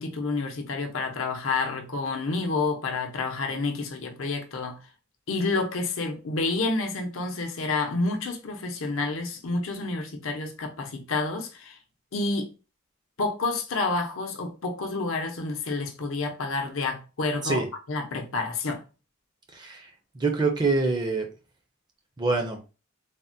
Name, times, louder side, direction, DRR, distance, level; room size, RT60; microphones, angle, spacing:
voice 1, 0.0-4.8 5.3-11.8 12.1-12.5 13.2-18.8, left 3 dB, 75° left, 0.7 m, -29 dB
voice 2, 19.5-19.9 20.1-21.2 22.2-22.6, right 3 dB, 20° right, 0.5 m, -25 dB
3.4 x 2.1 x 2.6 m
head